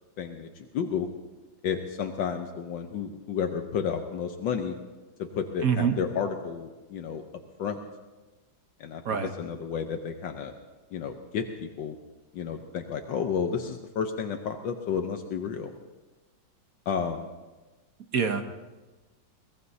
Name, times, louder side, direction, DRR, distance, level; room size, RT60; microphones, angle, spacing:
voice 1, 0.2-1.1 1.6-4.8 5.2-7.2 7.6-7.8 8.8-10.5 10.9-12.0 12.3-15.7 16.9-17.3, left 7 dB, 75° left, 5 dB, 1.5 m, -31 dB
voice 2, 5.6-6.0 9.0-9.3 18.1-18.4, right 7 dB, 55° right, 6 dB, 1.3 m, -25 dB
22.5 x 18.5 x 2.8 m, 1.2 s
omnidirectional pair, 2.1 m